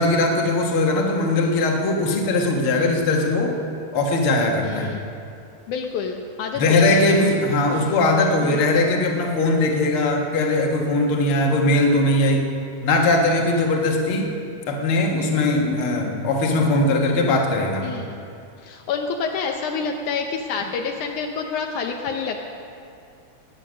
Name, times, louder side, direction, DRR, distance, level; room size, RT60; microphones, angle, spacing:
voice 1, 0.0-3.6 3.9-4.9 6.6-12.5 12.8-14.3 14.7-17.9, left 2 dB, 50° left, 1 dB, 2.1 m, -20 dB
voice 2, 4.6-5.0 5.7-7.1 7.8-7.9 8.4-8.6 17.8-18.2 18.6-22.4, left 5 dB, 75° left, 3 dB, 2.2 m, -28 dB
17.5 x 10.0 x 6.3 m, 2.5 s
omnidirectional pair, 3.6 m